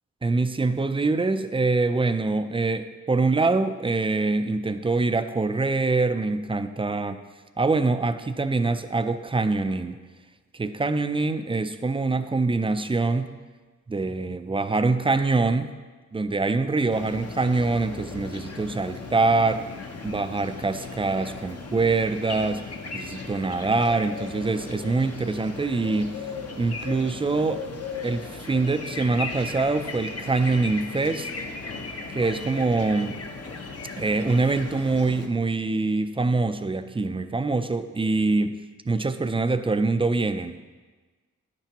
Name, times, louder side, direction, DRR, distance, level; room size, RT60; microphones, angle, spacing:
voice 1, 0.2-7.2 7.6-10.0 10.5-13.3 13.9-15.7 16.1-19.6 20.0-22.6 22.9-26.1 26.6-27.6 28.0-31.3 32.1-33.2 34.0-38.6 38.9-40.6, right 3 dB, 20° right, 10 dB, 0.4 m, -24 dB
sound 1, 16.9-35.3, left 4 dB, 55° left, 0.9 m, -37 dB
10.0 x 8.9 x 2.9 m, 1.3 s
wide cardioid pair, 110°, 30 cm